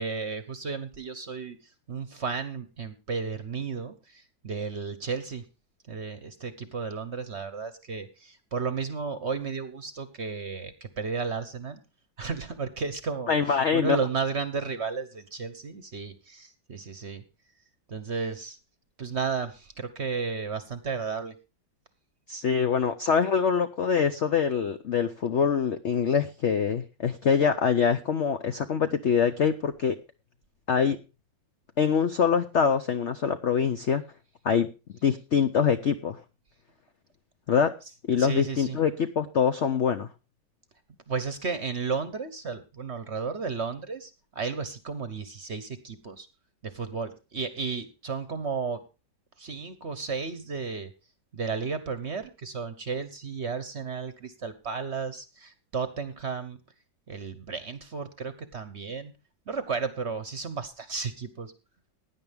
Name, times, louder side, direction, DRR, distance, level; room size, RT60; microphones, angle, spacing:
voice 1, 0.0-1.6 1.9-5.4 5.9-11.8 12.2-17.2 17.9-18.6 19.0-21.3 38.2-38.8 41.1-46.3 46.6-48.8 49.4-50.9 51.3-56.6 57.1-59.1 59.5-61.5, right 5 dB, 45° right, 12 dB, 1.0 m, -33 dB
voice 2, 13.3-14.0 22.3-30.0 30.7-31.0 31.8-34.0 34.4-34.7 35.0-36.2 37.5-37.7 38.1-40.1, left 6 dB, 70° left, 9 dB, 0.6 m, -24 dB
16.5 x 9.9 x 3.5 m, 0.29 s
omnidirectional pair, 2.1 m